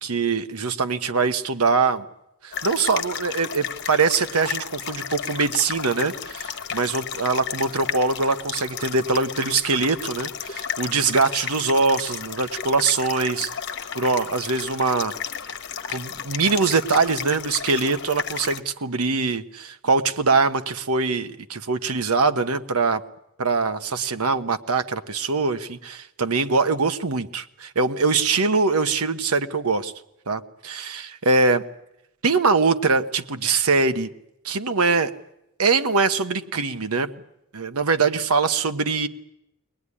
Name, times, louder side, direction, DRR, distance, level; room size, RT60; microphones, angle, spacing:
voice 1, 0.0-2.0 2.4-13.5 14.0-15.1 15.9-23.0 23.4-27.4 27.7-29.9 30.3-31.6 32.2-34.1 34.4-35.1 35.6-37.1 37.5-39.1, right 4 dB, 90° right, 9 dB, 1.2 m, -23 dB
sound 1, 2.5-18.6, left 8 dB, 50° left, 1.4 m, -33 dB
22.5 x 19.5 x 9.9 m, 0.85 s
head